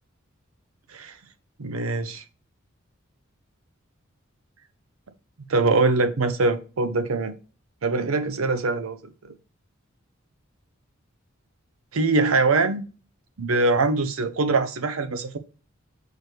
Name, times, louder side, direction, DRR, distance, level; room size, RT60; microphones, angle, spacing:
voice 1, 1.6-2.2 5.5-7.3 7.8-9.0 9.2-9.3 11.9-12.8 13.4-15.4, right 3 dB, 85° right, 0.7 m, -23 dB
6.5 x 4.6 x 3.2 m
head